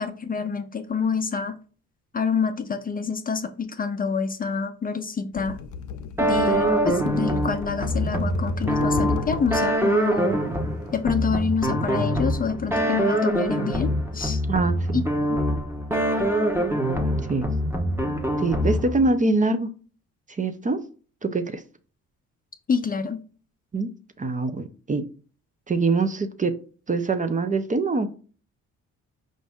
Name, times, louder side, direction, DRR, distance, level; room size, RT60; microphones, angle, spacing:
voice 1, 0.0-1.5 2.1-5.6 6.2-10.4 10.9-14.4 14.9-15.0 15.3-15.4 22.7-23.2, left 5 dB, 30° left, 0.5 m, -27 dB
sound 1, 5.3-9.8 10.9-11.0, left 7 dB, 75° left, 0.6 m, -34 dB
sound 2, 6.2-19.1, equal, 10° right, 1.0 m, -24 dB
voice 2, 14.5-15.0 17.3-17.5 18.4-19.7 20.3-20.8 21.2-21.6 23.7-23.9 24.2-25.0 25.7-26.5 26.9-28.1, right 3 dB, 25° right, 0.6 m, -24 dB
5.1 x 2.6 x 3.4 m
cardioid pair, 90°, 30 cm